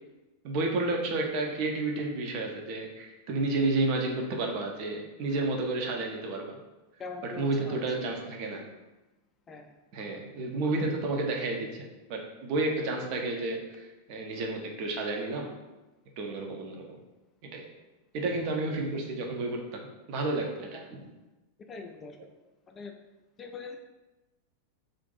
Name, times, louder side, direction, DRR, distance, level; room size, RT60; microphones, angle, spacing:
voice 1, 0.4-6.6 7.2-8.6 9.9-15.5 16.2-17.0 17.4-17.7 18.1-21.1, right 2 dB, 45° right, 1 dB, 0.6 m, -31 dB
voice 2, 7.0-7.8 9.5-9.8 21.7-22.3 22.7-23.0 23.4-23.8, left 4 dB, 25° left, 4 dB, 0.3 m, -42 dB
2.6 x 2.5 x 3.8 m, 1.1 s
figure-of-eight pair, 90°, 0 cm